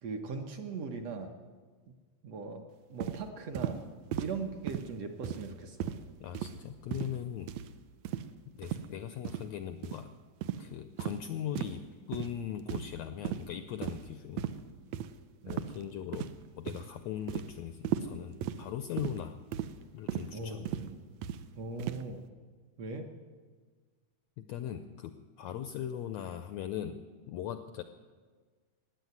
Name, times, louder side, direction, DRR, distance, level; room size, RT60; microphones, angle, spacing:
voice 1, 0.0-1.3 1.9-2.0 2.2-2.7 2.9-3.8 4.2-5.9 15.4-15.6 20.3-21.0 21.6-22.2 22.8-23.1, right 4 dB, 65° right, 4 dB, 1.8 m, -39 dB
sound 1, 3.0-3.2 3.5-3.8 4.1-4.3 4.7-4.9 5.2-5.5 5.8-6.0 6.3-6.6 6.9-7.2 7.5-7.7 8.0-8.3 8.6-8.8 9.2-9.4 9.8-10.0 10.4-10.6 11.0-11.2 11.5-11.8 12.1-12.3 12.7-13.0 13.2-13.4 13.8-14.1 14.4-14.6 14.9-15.1 15.5-15.8 16.1-16.4 16.7-16.9 17.3-17.5 17.8-18.1 18.4-18.6 19.0-19.2 19.5-19.7 20.1-20.3 20.6-20.9 21.2-21.4 21.8-22.0, right 11 dB, 80° right, 1.5 m, -35 dB
voice 2, 6.2-7.5 8.5-10.1 10.6-14.5 15.5-16.3 16.6-19.4 19.9-20.7 24.4-27.0 27.3-27.8, left 10 dB, 85° left, 10 dB, 1.5 m, -39 dB
15.5 x 9.5 x 9.4 m, 1.5 s
omnidirectional pair, 3.7 m